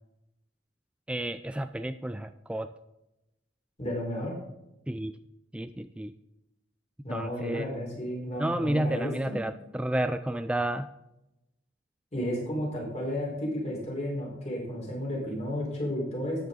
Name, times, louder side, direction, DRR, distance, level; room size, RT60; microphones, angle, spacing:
voice 1, 1.1-2.7 4.9-5.2 5.5-6.1 7.1-7.7 8.4-10.9, right 1 dB, 5° right, 10 dB, 0.3 m, -31 dB
voice 2, 3.8-4.3 7.0-9.4 12.1-16.5, equal, 40° left, -2 dB, 4.3 m, -32 dB
13.0 x 8.8 x 3.9 m, 0.89 s
head